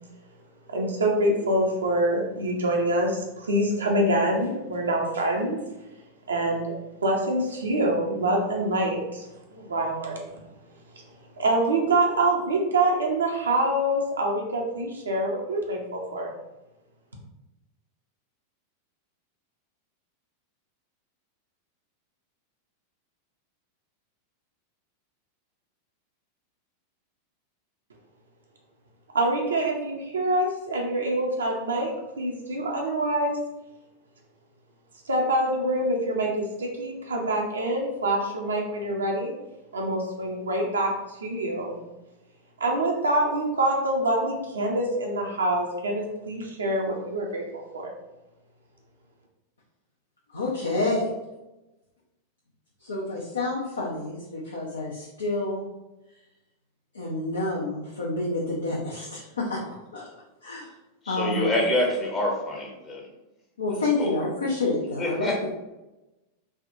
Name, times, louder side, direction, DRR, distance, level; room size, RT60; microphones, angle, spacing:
voice 1, 0.7-5.6 6.3-6.7 7.0-10.3 11.4-16.3 29.1-33.4 35.1-39.3 39.7-41.8 42.6-47.9, right 1 dB, 70° right, -1 dB, 0.5 m, -25 dB
voice 2, 50.3-51.1 52.8-55.6 56.9-59.6 59.9-60.0 60.4-60.7 61.1-61.5 63.6-65.5, left 2 dB, 75° left, -4 dB, 0.5 m, -28 dB
voice 3, 61.0-63.0 64.0-64.1 65.0-65.5, left 1 dB, 25° left, -1 dB, 0.7 m, -26 dB
3.4 x 2.2 x 2.6 m, 0.98 s
figure-of-eight pair, 90°, 0 cm